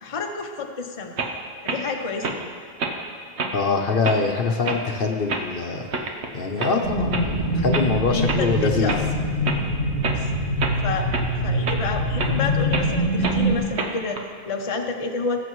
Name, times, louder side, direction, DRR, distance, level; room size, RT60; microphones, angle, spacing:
voice 1, 0.0-1.2 1.6-2.5 8.1-9.0 10.0-10.3 10.8-11.1 11.4-15.4, left 4 dB, 35° left, 3 dB, 0.8 m, -29 dB
sound 1, 1.2-1.3 1.6-1.8 2.2-2.4 2.8-3.0 3.4-3.5 4.0-4.2 4.6-4.8 5.3-5.5 5.9-6.3 6.6-6.7 7.1-7.3 7.7-7.9 8.3-8.4 8.9-9.0 9.4-9.6 10.0-10.2 10.6-10.8 11.1-11.3 11.6-11.8 12.2-12.3 12.7-12.9 13.2-13.4 13.7-14.2, right 3 dB, 85° right, 1.3 m, -27 dB
voice 2, 3.5-5.9 6.3-8.9, left 4 dB, 60° left, 3 dB, 1.0 m, -24 dB
sound 2, 6.8-13.6, equal, 65° right, 3.5 m, -24 dB
20.0 x 7.7 x 3.1 m, 2.2 s
omnidirectional pair, 1.1 m